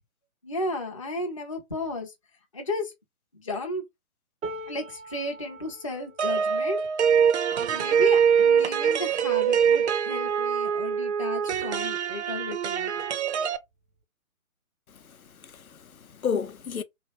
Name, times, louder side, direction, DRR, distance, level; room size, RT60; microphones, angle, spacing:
voice 1, 0.4-2.1 2.5-2.9 3.4-3.8 4.7-6.9 7.7-12.9, left 2 dB, 25° left, 0.4 m, -33 dB
sound 1, 4.4-10.6 11.2-11.4 11.6-12.4 13.4-13.5, right 1 dB, 80° right, 0.9 m, -45 dB
sound 2, 6.2-13.6, right 7 dB, 55° right, 0.5 m, -24 dB
voice 2, 14.9-16.8, left 6 dB, 90° left, 0.6 m, -33 dB
3.0 x 2.3 x 2.8 m
figure-of-eight pair, 135°, 41 cm